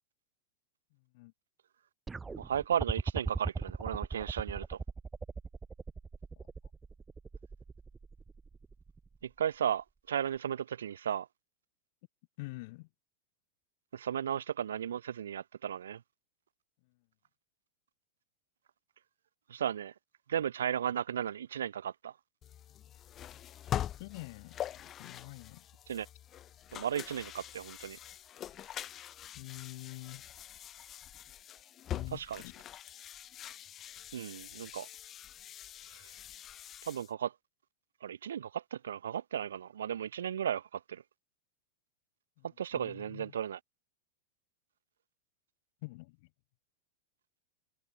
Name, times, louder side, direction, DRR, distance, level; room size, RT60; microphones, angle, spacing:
sound 1, 2.1-9.2 10.4-10.5, right 4 dB, 15° right, 0.8 m, -39 dB
voice 1, 2.4-4.8 9.2-11.3 13.9-16.0 19.5-19.9 20.3-22.1 25.9-26.1 26.7-28.0 32.1-32.4 34.1-34.9 36.8-37.3 38.0-41.0 42.6-43.6, right 9 dB, 65° right, 1.3 m, -35 dB
voice 2, 12.4-12.9 24.0-25.7 29.3-30.3 31.9-32.5 42.4-42.5 42.7-43.3 45.8-46.3, left 24 dB, 50° left, 2.7 m, -46 dB
sound 2, 22.4-37.1, left 11 dB, 30° left, 2.3 m, -44 dB
figure-of-eight pair, 90°, 0 cm